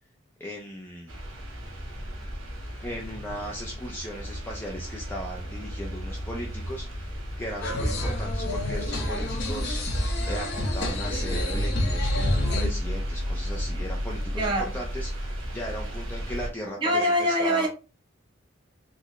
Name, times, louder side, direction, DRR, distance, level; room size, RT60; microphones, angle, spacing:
voice 1, 0.4-1.1 2.8-15.1 15.5-17.7, equal, 10° left, 0.4 m, -37 dB
sound 1, 1.1-16.5, equal, 80° right, 1.2 m, -34 dB
sound 2, 7.6-12.7, left 1 dB, 55° left, 0.8 m, -28 dB
voice 2, 14.3-14.7 16.8-17.7, equal, 20° right, 0.9 m, -23 dB
3.9 x 2.1 x 3.0 m
head